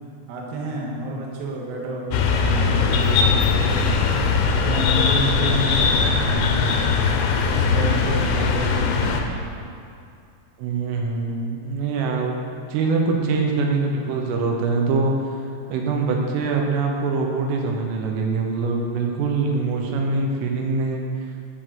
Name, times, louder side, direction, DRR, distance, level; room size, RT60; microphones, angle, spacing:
voice 1, 0.3-3.9 4.5-6.1 7.5-9.3, right 2 dB, 60° right, -3 dB, 2.6 m, -30 dB
sound 1, 2.1-9.2, left 5 dB, 80° left, 2.7 m, -20 dB
voice 2, 7.4-7.9 10.6-15.1 15.4-21.1, right 4 dB, 80° right, 1 dB, 3.6 m, -24 dB
12.5 x 4.6 x 7.7 m, 2.5 s
omnidirectional pair, 5.8 m